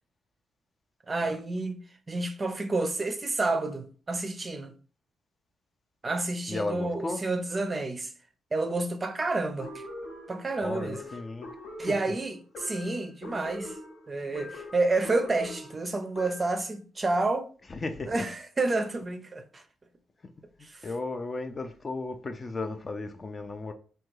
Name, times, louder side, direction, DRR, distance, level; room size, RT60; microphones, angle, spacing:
voice 1, 1.1-1.8 2.1-4.7 6.0-8.1 8.5-9.8 10.3-11.0 11.8-13.8 14.1-17.5 18.1-19.6 20.6-20.8, right 2 dB, 25° right, 0.5 m, -29 dB
voice 2, 6.5-7.2 10.6-11.5 11.9-12.0 17.7-18.2 20.8-23.7, left 3 dB, 30° left, 0.4 m, -34 dB
sound 1, 9.6-16.7, left 1 dB, 70° left, 0.9 m, -43 dB
3.3 x 2.2 x 3.1 m
cardioid pair, 90°, 0 cm